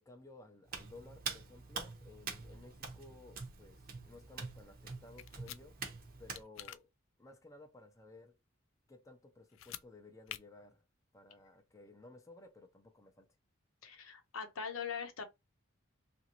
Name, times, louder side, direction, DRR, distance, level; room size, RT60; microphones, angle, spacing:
voice 1, 0.0-5.8 6.2-6.9 7.2-8.4 8.9-10.9 11.1-13.3, left 2 dB, 15° left, 0.5 m, -56 dB
Hands, 0.7-6.4, right 5 dB, 45° right, 0.7 m, -45 dB
sound 1, 5.2-5.6 6.3-6.8 9.5-9.9 10.3-10.4, left 12 dB, 65° left, 0.3 m, -46 dB
voice 2, 13.8-15.2, left 6 dB, 85° left, 0.8 m, -41 dB
2.9 x 2.6 x 2.9 m
head